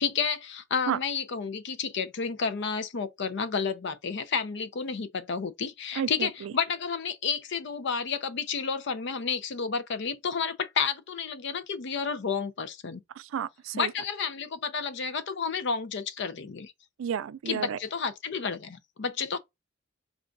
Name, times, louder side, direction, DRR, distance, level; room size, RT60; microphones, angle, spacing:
voice 1, 0.0-13.0 13.7-16.7 17.5-19.4, left 5 dB, 60° left, 0.5 m, -31 dB
voice 2, 5.9-6.5 13.2-13.9 17.0-17.8, right 8 dB, 75° right, 0.3 m, -32 dB
3.7 x 2.3 x 3.8 m
head